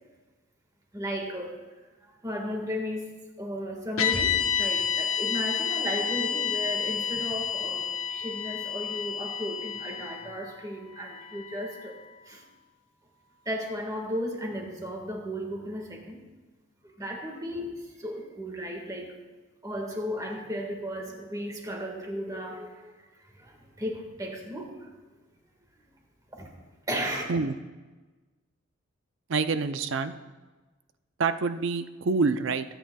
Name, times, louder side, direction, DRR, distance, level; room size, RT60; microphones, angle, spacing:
voice 1, 0.9-1.6 2.0-12.0 12.2-12.4 13.4-16.2 16.8-19.1 19.6-24.9 26.3-26.5 26.9-27.2, equal, 15° right, 1 dB, 1.7 m, -35 dB
sound 1, 4.0-12.3, left 7 dB, 85° left, 1.2 m, -30 dB
voice 2, 29.3-30.1 31.2-32.6, right 4 dB, 60° right, 10 dB, 0.5 m, -26 dB
22.0 x 9.0 x 2.3 m, 1.3 s
head